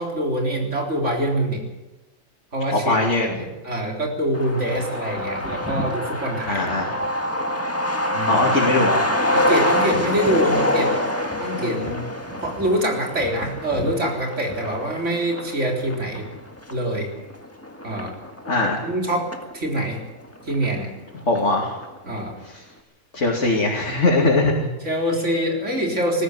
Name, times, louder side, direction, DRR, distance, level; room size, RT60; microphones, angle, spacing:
voice 1, 0.0-1.6 2.5-6.7 8.1-8.5 9.3-10.9 11.4-11.8 12.4-16.3 16.7-17.1 17.8-18.1 18.8-20.0 20.5-20.9 22.0-22.4 24.8-26.2, right 1 dB, 70° right, 1 dB, 4.2 m, -25 dB
voice 2, 2.7-3.4 6.5-6.9 8.3-9.1 11.5-12.0 18.5-18.9 21.3-21.7 23.1-24.7, left 2 dB, 70° left, -2 dB, 3.0 m, -21 dB
Truck, 4.3-19.5 19.8-19.9 20.2-21.1 21.4-21.5 21.8-22.2, left 1 dB, 10° left, 1.8 m, -26 dB
19.5 x 14.0 x 9.7 m, 1.1 s
omnidirectional pair, 1.3 m